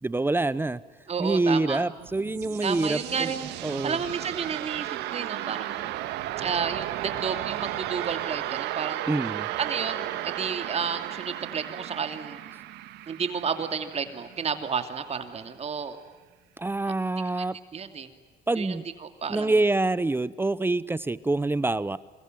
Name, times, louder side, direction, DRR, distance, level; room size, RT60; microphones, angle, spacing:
voice 1, 0.0-0.8 1.2-3.3 3.6-4.0 9.1-9.5 16.6-17.6 18.5-18.9 19.3-22.0, right 2 dB, 15° right, 17 dB, 0.8 m, -26 dB
voice 2, 1.1-1.8 2.6-5.9 6.4-9.0 9.6-12.4 13.1-16.0 17.4-17.5 17.7-18.1 18.5-19.5, right 6 dB, 40° right, 7 dB, 2.8 m, -31 dB
sound 1, 2.0-14.7, right 14 dB, 85° right, 1.8 m, -34 dB
28.5 x 22.5 x 9.2 m, 1.4 s
cardioid pair, 110°, 17 cm